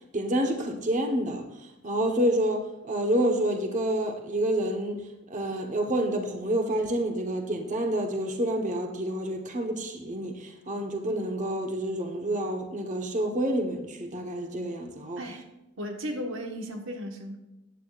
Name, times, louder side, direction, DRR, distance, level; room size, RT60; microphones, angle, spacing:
voice 1, 0.1-1.4 1.8-5.0 5.3-15.2, right 1 dB, 40° right, 3 dB, 1.3 m, -28 dB
voice 2, 15.8-17.4, equal, 80° right, 3 dB, 1.4 m, -35 dB
15.0 x 9.8 x 2.5 m, 0.98 s
head